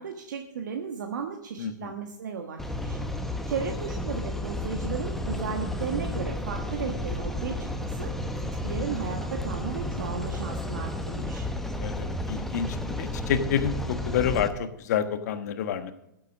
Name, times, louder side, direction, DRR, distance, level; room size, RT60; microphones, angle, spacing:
voice 1, 0.0-3.0 3.5-8.1 8.6-11.5, right 6 dB, 70° right, 3 dB, 1.4 m, -35 dB
voice 2, 1.6-1.9 11.8-15.9, left 8 dB, 60° left, 10 dB, 1.2 m, -28 dB
sound 1, 2.6-14.5, left 1 dB, 5° left, 1.0 m, -32 dB
14.5 x 7.7 x 6.1 m, 0.84 s
hypercardioid pair, 115°, 10 cm